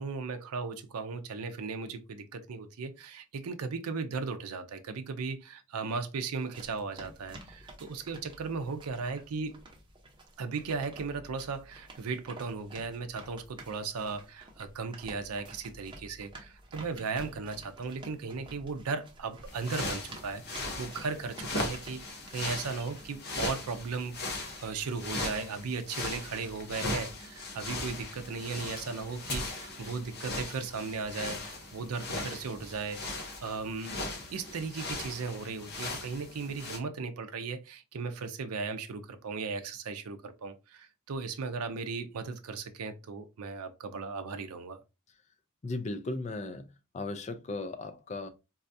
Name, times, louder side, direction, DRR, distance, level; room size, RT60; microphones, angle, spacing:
voice 1, 0.0-9.6 10.4-34.0 34.3-44.8, right 4 dB, 75° right, 0.5 m, -37 dB
sound 1, 6.4-23.2, right 1 dB, 20° right, 0.7 m, -51 dB
sound 2, 19.5-36.8, left 2 dB, 45° left, 0.8 m, -38 dB
voice 2, 45.6-48.3, left 2 dB, 30° left, 0.4 m, -37 dB
4.1 x 2.3 x 2.6 m
head